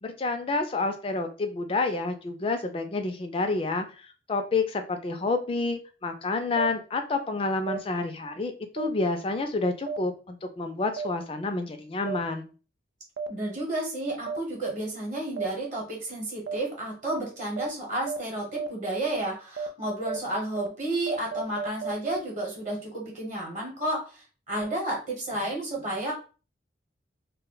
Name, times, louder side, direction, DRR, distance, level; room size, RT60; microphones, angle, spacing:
voice 1, 0.0-12.5, left 3 dB, 30° left, 7 dB, 0.3 m, -29 dB
sound 1, 6.6-6.7 7.7-7.8 8.8-8.9 9.9-10.0 11.0-11.1 12.1-12.2 13.2-13.3 14.3-14.4 15.4-15.5 16.5-16.6 17.1-17.2 17.6-17.7 18.1-18.2 18.6-18.7 19.1-19.2 19.6-19.7 20.1-20.2 20.6-20.7 21.1-22.2, right 5 dB, 70° right, 0.3 m, -32 dB
voice 2, 13.3-26.1, right 1 dB, 40° right, -2 dB, 0.9 m, -32 dB
2.2 x 2.1 x 3.8 m, 0.35 s
head